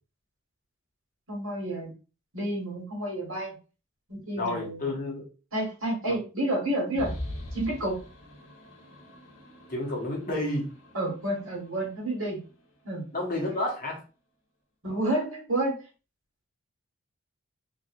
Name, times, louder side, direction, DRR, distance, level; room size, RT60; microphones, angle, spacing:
voice 1, 1.3-1.9 2.3-3.5 4.1-4.8 5.5-7.1 7.5-8.0 10.9-12.4 12.8-13.0 14.8-15.7, right 1 dB, 70° right, -1 dB, 1.6 m, -30 dB
voice 2, 4.4-5.2 6.1-6.2 9.7-10.7 13.1-14.0, left 1 dB, 40° left, -2 dB, 1.2 m, -30 dB
sound 1, 7.0-12.5, left 1 dB, 75° left, 0.8 m, -42 dB
3.6 x 2.8 x 2.5 m, 0.33 s
head